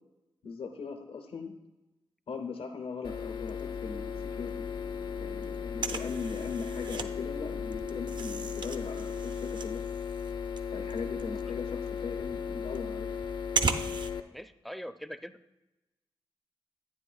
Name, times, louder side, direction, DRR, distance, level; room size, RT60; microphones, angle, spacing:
voice 1, 0.4-1.5 2.3-4.6 5.2-9.8 10.7-13.1, left 5 dB, 80° left, 6 dB, 0.9 m, -39 dB
sound 1, 3.0-14.2, left 7 dB, 55° left, 0.5 m, -36 dB
sound 2, 3.3-4.2 4.5-4.6 4.8-7.1 7.5-14.1, right 4 dB, 55° right, 0.5 m, -36 dB
sound 3, 3.6-9.2, right 1 dB, 75° right, 1.9 m, -53 dB
voice 2, 14.3-15.4, equal, ahead, 11 dB, 0.4 m, -42 dB
11.0 x 9.1 x 2.4 m, 1.0 s
cardioid pair, 70°, 9 cm